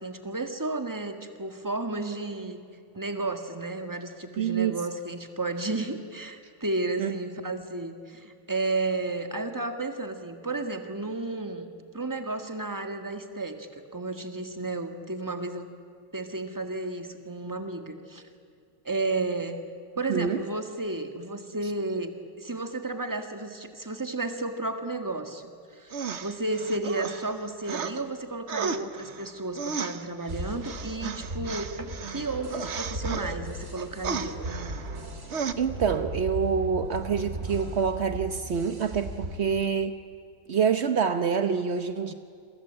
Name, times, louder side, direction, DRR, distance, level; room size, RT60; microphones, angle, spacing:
voice 1, 0.0-2.6 2.9-11.7 11.9-15.7 16.1-18.2 18.8-19.6 20.0-34.4, right 2 dB, 10° right, 6 dB, 1.5 m, -32 dB
voice 2, 4.4-4.8 7.0-7.1 20.1-20.4 35.6-39.9 40.5-42.1, right 6 dB, 75° right, 9 dB, 0.6 m, -26 dB
sound 1, 25.9-28.0 28.5-33.4 33.8-35.1 35.3-35.5, right 6 dB, 45° right, 0.9 m, -34 dB
sound 2, 30.3-39.6, right 1 dB, 30° right, 2.6 m, -37 dB
28.5 x 23.0 x 8.8 m, 2.3 s
omnidirectional pair, 2.4 m